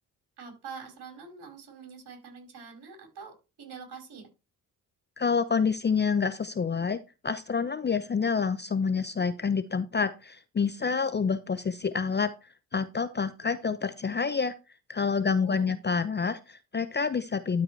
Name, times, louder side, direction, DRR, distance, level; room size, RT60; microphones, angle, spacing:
voice 1, 0.4-4.3 15.2-15.8, right 5 dB, 55° right, 1 dB, 4.6 m, -45 dB
voice 2, 5.2-14.5 14.9-17.6, left 5 dB, 25° left, 13 dB, 0.7 m, -28 dB
12.5 x 4.8 x 3.3 m, 0.28 s
hypercardioid pair, 50°, 46 cm